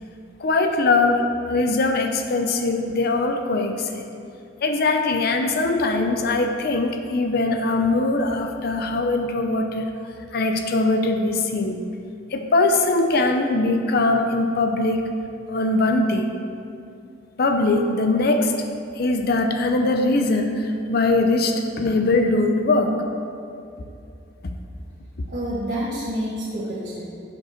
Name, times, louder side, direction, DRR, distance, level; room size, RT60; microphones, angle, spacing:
voice 1, 0.4-1.2 1.5-4.1 4.6-9.9 10.3-11.8 12.3-15.0 15.5-16.3 17.4-18.5 19.0-23.0, left 2 dB, 50° left, 5 dB, 0.5 m, -21 dB
voice 2, 25.3-27.1, equal, 50° right, -10 dB, 1.6 m, -28 dB
7.4 x 5.2 x 5.8 m, 2.6 s
head